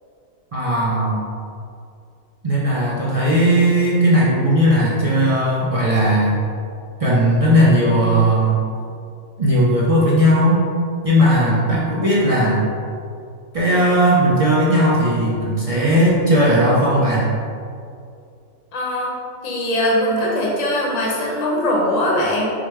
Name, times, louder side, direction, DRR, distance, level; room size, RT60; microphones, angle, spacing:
voice 1, 0.5-1.2 2.4-6.4 7.0-8.6 9.4-10.6 11.0-12.6 13.5-17.3, equal, 45° right, -6 dB, 0.4 m, -17 dB
voice 2, 18.7-19.1 19.4-22.5, left 1 dB, 35° left, -4 dB, 0.8 m, -21 dB
4.8 x 2.2 x 4.6 m, 2.4 s
omnidirectional pair, 1.4 m